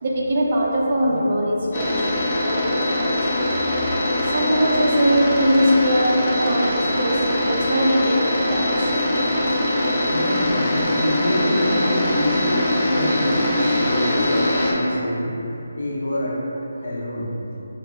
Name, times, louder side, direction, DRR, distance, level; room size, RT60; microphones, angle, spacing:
voice 1, 0.0-3.5 4.3-8.9, equal, 40° right, -3 dB, 0.4 m, -22 dB
sound 1, 1.7-14.7, left 1 dB, 30° left, 0.5 m, -22 dB
voice 2, 10.1-12.6 12.9-15.3 15.8-16.4 16.8-17.3, left 1 dB, 70° left, -5 dB, 0.8 m, -26 dB
5.3 x 2.0 x 2.3 m, 2.9 s
figure-of-eight pair, 170°, 0 cm